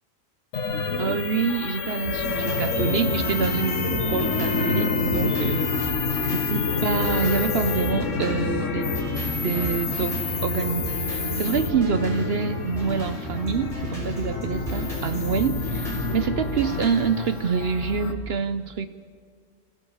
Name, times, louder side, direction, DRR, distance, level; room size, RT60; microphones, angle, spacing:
sound 1, 0.5-18.1, left 4 dB, 85° left, 1.9 m, -28 dB
voice 1, 1.0-6.1 6.3-8.9 9.4-18.9, right 6 dB, 60° right, 12 dB, 0.9 m, -26 dB
sound 2, 2.0-17.3, equal, 25° right, 5.8 m, -34 dB
25.5 x 15.0 x 7.3 m, 2.1 s
omnidirectional pair, 1.3 m